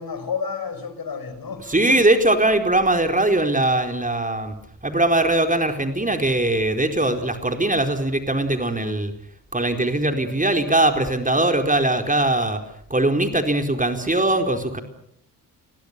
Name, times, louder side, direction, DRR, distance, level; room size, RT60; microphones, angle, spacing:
voice 1, 0.0-2.0, left 6 dB, 45° left, 6.1 m, -31 dB
voice 2, 1.7-4.5 4.8-9.1 9.5-12.6 12.9-14.8, right 2 dB, 15° right, 4.3 m, -21 dB
30.0 x 23.0 x 6.9 m
hypercardioid pair, 45°, 49 cm